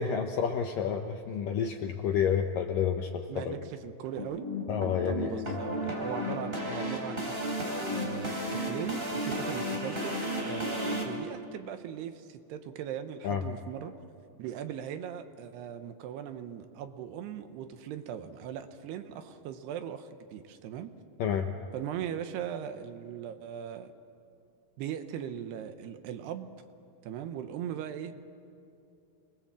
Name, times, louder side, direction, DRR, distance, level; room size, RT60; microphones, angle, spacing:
voice 1, 0.0-3.6 4.7-5.6 13.2-13.4 21.2-21.5, left 7 dB, 75° left, 4 dB, 2.0 m, -30 dB
voice 2, 3.3-4.5 5.1-7.3 7.9-14.0 14.4-20.9 21.7-23.9 24.8-26.5 27.0-28.2, right 9 dB, 75° right, 8 dB, 2.9 m, -39 dB
sound 1, 4.2-11.0, equal, 15° right, 3.7 m, -33 dB
28.5 x 20.5 x 7.5 m, 2.6 s
omnidirectional pair, 5.0 m